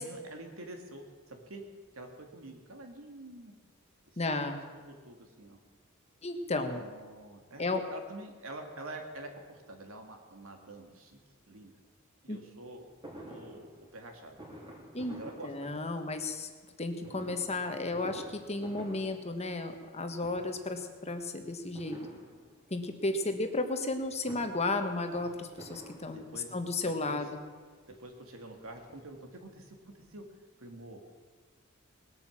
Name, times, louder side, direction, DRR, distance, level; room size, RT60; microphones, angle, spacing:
voice 1, 0.0-1.6 1.9-3.5 4.1-4.4 4.7-5.6 6.7-7.7 7.9-11.2 11.5-11.8 12.2-12.8 13.3-14.4 15.1-15.8 26.1-27.2 27.9-30.2 30.6-31.0, right 2 dB, 75° right, 4 dB, 2.4 m, -47 dB
voice 2, 4.2-4.6 6.2-6.8 7.6-7.8 12.3-12.4 14.9-15.1 15.4-16.5 16.8-22.0 22.7-27.4, left 2 dB, 30° left, 6 dB, 1.4 m, -33 dB
Fireworks, 13.0-16.2 17.0-19.9 20.2-20.8 21.7-22.8 24.0-26.6 27.4-27.5 27.8-27.9 28.2-29.5 29.8-29.9 30.1-30.2, right 1 dB, 20° right, 3.4 m, -50 dB
20.0 x 8.8 x 7.4 m, 1.5 s
head